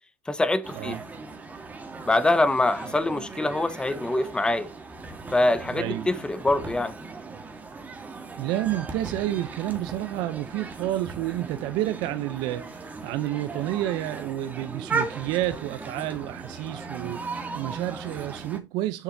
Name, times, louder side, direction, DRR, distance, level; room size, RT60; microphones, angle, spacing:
voice 1, 0.3-1.0 2.1-4.7 5.3-7.0, left 2 dB, 10° left, 0.8 m, -24 dB
sound 1, 0.6-18.6, right 4 dB, 20° right, 1.5 m, -37 dB
voice 2, 5.7-6.1 8.4-17.3 17.5-19.0, right 14 dB, 70° right, 0.6 m, -30 dB
7.3 x 6.6 x 2.6 m
supercardioid pair, 110°, 8 cm